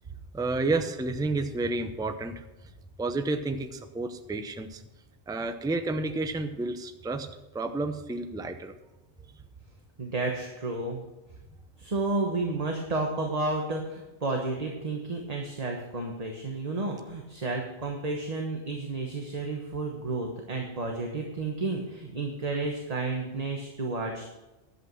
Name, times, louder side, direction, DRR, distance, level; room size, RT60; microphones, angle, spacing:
voice 1, 0.3-2.4 3.0-4.8 5.3-7.3 7.5-8.7, right 2 dB, 5° right, 8 dB, 0.5 m, -30 dB
voice 2, 10.0-11.0 11.8-24.3, right 3 dB, 35° right, 1 dB, 1.2 m, -31 dB
11.0 x 8.1 x 6.2 m, 1.0 s
omnidirectional pair, 1.2 m